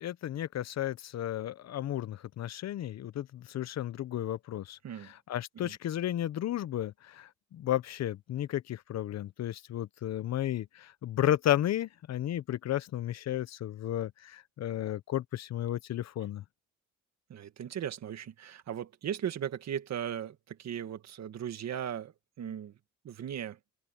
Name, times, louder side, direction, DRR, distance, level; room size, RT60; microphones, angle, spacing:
voice 1, 0.0-16.4, left 12 dB, 60° left, 0.8 m, -33 dB
voice 2, 17.3-22.7 23.0-23.6, right 9 dB, 60° right, 1.9 m, -37 dB
open air
cardioid pair, 90°, 30 cm